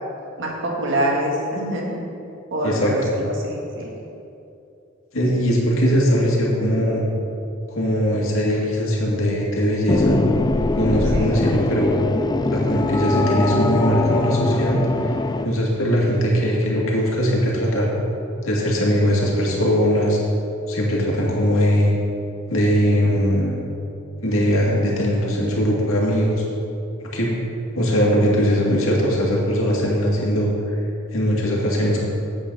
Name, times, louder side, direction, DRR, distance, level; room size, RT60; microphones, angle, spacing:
voice 1, 0.4-2.0 2.5-3.9 11.1-11.4, right 1 dB, 65° right, -2 dB, 2.0 m, -25 dB
voice 2, 2.6-3.1 5.1-7.1 7.7-10.2 10.7-12.0 12.5-14.8 15.1-17.9 18.4-20.2 20.7-21.9 22.5-23.6 24.2-26.4 27.0-27.3 27.7-30.5 31.1-32.1, equal, 80° left, -3 dB, 2.2 m, -20 dB
sound 1, 9.9-15.5, left 2 dB, 20° left, 0.3 m, -22 dB
9.0 x 8.4 x 5.5 m, 2.7 s
head